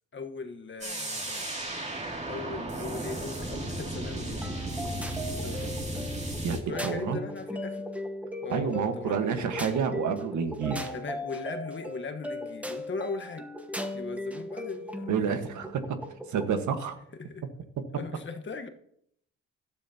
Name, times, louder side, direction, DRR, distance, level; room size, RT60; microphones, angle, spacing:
voice 1, 0.1-1.5 2.3-4.7 5.4-5.8 6.5-7.8 8.4-9.5 10.9-13.5 13.9-15.4 17.2-17.4 17.9-18.7, left 4 dB, 40° left, 6 dB, 1.3 m, -39 dB
sound 1, 0.8-6.6, right 1 dB, 20° right, 2.6 m, -35 dB
sound 2, 4.4-16.6, left 1 dB, 5° right, 1.1 m, -38 dB
voice 2, 6.8-7.2 8.5-10.9 15.1-16.0 16.3-16.9, right 7 dB, 75° right, 7 dB, 1.5 m, -29 dB
17.0 x 12.5 x 2.9 m, 0.71 s
cardioid pair, 90°, 30 cm